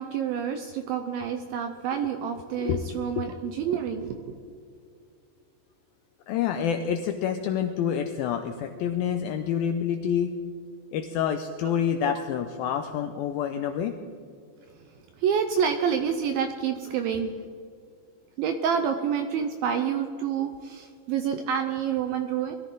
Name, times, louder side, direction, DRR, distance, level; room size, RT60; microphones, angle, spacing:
voice 1, 0.0-4.4 15.2-17.4 18.4-22.6, right 7 dB, 80° right, 7 dB, 2.1 m, -28 dB
voice 2, 6.3-10.3 10.9-14.0, left 8 dB, 90° left, 7 dB, 2.1 m, -27 dB
21.5 x 13.5 x 3.8 m, 2.4 s
omnidirectional pair, 4.9 m